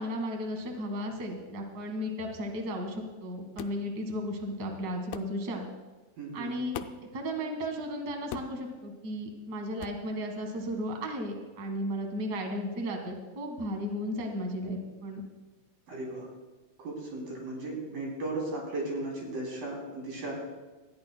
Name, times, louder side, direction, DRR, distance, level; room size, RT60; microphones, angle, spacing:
voice 1, 0.0-5.7 6.3-6.8 7.1-15.2, equal, 45° right, 3 dB, 1.4 m, -34 dB
sound 1, 3.6-3.8 5.1-5.3 6.7-7.1 8.3-8.6 9.8-10.0, left 10 dB, 85° left, 2.5 m, -39 dB
voice 2, 6.2-6.5 15.9-16.3 16.8-20.4, right 2 dB, 65° right, -2 dB, 4.8 m, -36 dB
19.5 x 14.0 x 2.2 m, 1.3 s
omnidirectional pair, 4.3 m